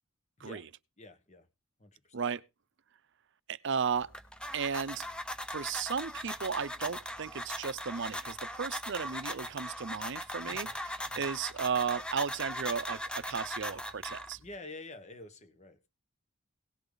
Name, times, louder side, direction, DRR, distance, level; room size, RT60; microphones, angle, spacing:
voice 1, 0.4-0.7 1.0-1.5 1.8-2.2 10.4-11.3 14.4-15.9, left 2 dB, 35° left, 1.4 m, -49 dB
voice 2, 3.5-4.1 4.5-5.0 5.5-10.7 11.1-14.4, right 6 dB, 60° right, 0.6 m, -34 dB
sound 1, 3.9-14.6, equal, 5° left, 0.9 m, -39 dB
18.0 x 6.9 x 4.0 m
head